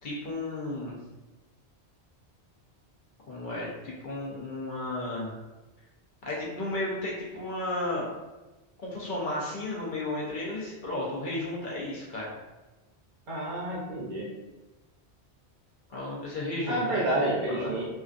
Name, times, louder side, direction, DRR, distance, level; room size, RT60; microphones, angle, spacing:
voice 1, 0.0-1.0 3.3-5.4 6.2-8.1 8.8-12.3 15.9-17.8, left 2 dB, 55° left, -5 dB, 0.7 m, -33 dB
voice 2, 13.3-14.3 16.7-17.9, right 1 dB, 55° right, -5 dB, 0.6 m, -29 dB
2.4 x 2.3 x 2.4 m, 1.1 s
omnidirectional pair, 1.1 m